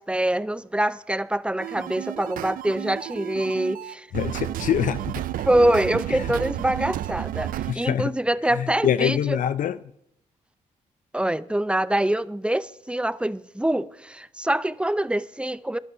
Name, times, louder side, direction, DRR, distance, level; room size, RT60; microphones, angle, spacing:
voice 1, 0.0-4.1 5.5-9.4 11.1-15.8, right 1 dB, 5° right, 0.6 m, -25 dB
sound 1, 1.6-7.7, right 13 dB, 85° right, 0.5 m, -32 dB
voice 2, 4.1-5.2 7.7-8.1 8.5-9.8, left 10 dB, 70° left, 0.5 m, -24 dB
12.0 x 11.0 x 5.5 m
cardioid pair, 70°, 14 cm